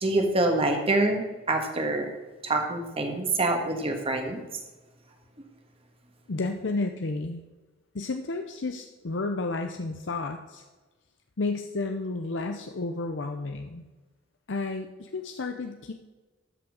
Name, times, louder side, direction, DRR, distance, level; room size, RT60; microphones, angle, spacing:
voice 1, 0.0-2.1 2.4-4.4, right 2 dB, 30° right, 3 dB, 1.6 m, -26 dB
voice 2, 6.3-7.4 7.9-10.6 11.4-13.8 14.5-15.9, left 3 dB, 80° left, 5 dB, 0.7 m, -31 dB
13.0 x 6.3 x 4.9 m, 1.2 s
head